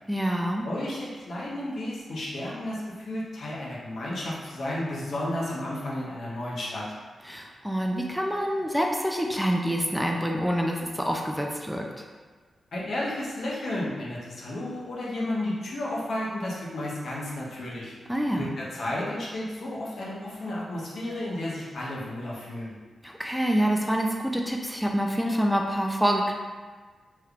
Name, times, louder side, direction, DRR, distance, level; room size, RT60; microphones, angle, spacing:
voice 1, 0.1-0.7 7.2-12.1 18.1-18.5 23.0-26.3, equal, ahead, 0 dB, 0.3 m, -26 dB
voice 2, 0.6-6.9 12.7-17.9 18.3-22.7, left 1 dB, 70° left, -5 dB, 0.8 m, -32 dB
3.2 x 3.1 x 2.4 m, 1.4 s
cardioid pair, 80°, 0 cm